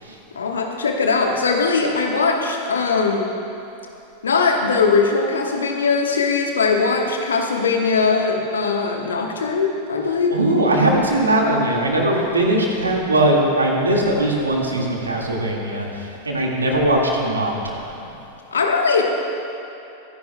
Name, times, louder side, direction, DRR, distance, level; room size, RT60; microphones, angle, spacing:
voice 1, 0.3-3.3 4.2-10.3 18.5-19.0, left 4 dB, 70° left, 2 dB, 1.2 m, -20 dB
voice 2, 10.3-18.1, right 1 dB, 75° right, -1 dB, 1.8 m, -20 dB
23.5 x 10.5 x 2.2 m, 2.9 s
figure-of-eight pair, 90°, 0 cm